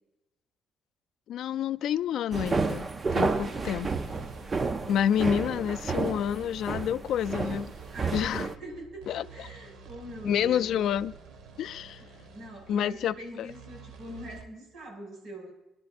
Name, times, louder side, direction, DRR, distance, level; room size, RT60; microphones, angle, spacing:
voice 1, 1.3-3.9 4.9-7.7 8.1-8.5 9.1-9.5 10.2-11.1 11.6-12.0 12.7-13.5, left 9 dB, 70° left, 0.3 m, -29 dB
sound 1, 2.3-8.6, right 4 dB, 25° right, 0.5 m, -31 dB
sound 2, 2.8-14.4, right 5 dB, 80° right, 1.5 m, -48 dB
voice 2, 3.4-5.2 7.9-10.8 12.3-15.5, right 1 dB, 55° right, 6.0 m, -44 dB
26.5 x 11.0 x 2.5 m
cardioid pair, 165°, 0 cm